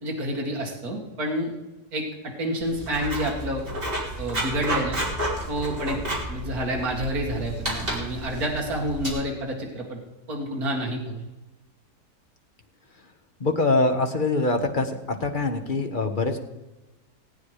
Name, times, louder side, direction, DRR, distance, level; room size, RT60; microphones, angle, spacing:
voice 1, 0.0-1.5 1.9-3.6 4.2-5.0 5.5-6.0 6.3-10.0 10.3-11.2, equal, 60° right, -1 dB, 2.6 m, -28 dB
Writing, 2.6-9.1, right 1 dB, 35° right, 3.4 m, -31 dB
voice 2, 13.4-16.4, left 2 dB, 30° left, 5 dB, 1.3 m, -24 dB
18.0 x 9.4 x 5.0 m, 1.1 s
omnidirectional pair, 1.8 m